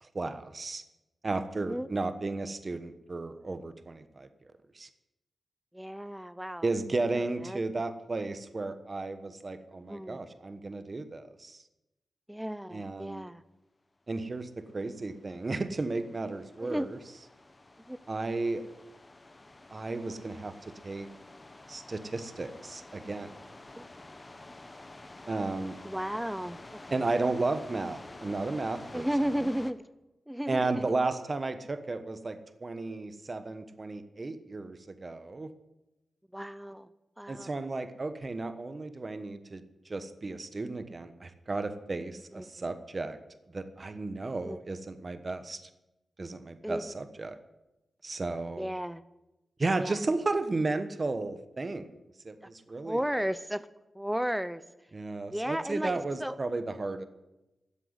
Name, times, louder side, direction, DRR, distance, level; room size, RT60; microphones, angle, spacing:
voice 1, 0.0-0.8 1.2-4.3 4.7-4.9 6.6-11.6 12.7-13.3 14.1-17.0 18.1-18.6 19.7-20.5 20.8-21.1 21.7-23.3 25.3-25.8 26.9-29.1 30.5-35.5 37.3-43.2 43.5-45.6 46.2-47.4 48.0-48.7 49.6-51.9 52.2-53.0 54.9-57.0, right 3 dB, 40° right, 10 dB, 1.2 m, -34 dB
voice 2, 5.7-6.7 7.4-7.6 9.9-10.2 12.3-13.4 16.6-16.9 17.9-18.0 23.8-23.9 25.8-27.0 28.9-29.8 30.3-30.9 36.3-36.9 37.2-37.5 42.3-42.7 44.2-44.6 46.6-46.9 48.6-49.0 49.8-50.0 52.4-52.5 52.8-53.7 53.9-54.6 55.3-56.4, equal, 5° right, 15 dB, 0.6 m, -34 dB
sound 1, 14.6-29.7, left 2 dB, 30° left, 1.1 m, -50 dB
13.0 x 7.9 x 9.6 m, 0.98 s
cardioid pair, 55°, 0 cm